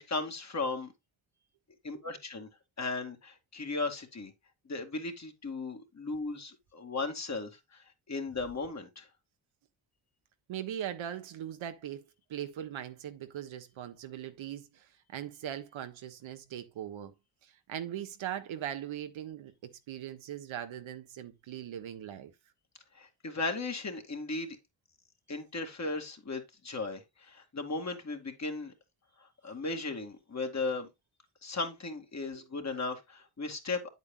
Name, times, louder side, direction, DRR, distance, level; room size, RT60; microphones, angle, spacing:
voice 1, 0.1-0.9 1.8-2.5 2.8-4.3 4.7-9.1 23.0-24.6 25.3-28.7 29.4-30.9 31.4-33.9, left 3 dB, 35° left, 2.2 m, -36 dB
voice 2, 10.5-12.0 12.3-17.1 17.4-22.3, right 10 dB, 80° right, 1.4 m, -40 dB
8.8 x 8.2 x 2.3 m
cardioid pair, 90°, 47 cm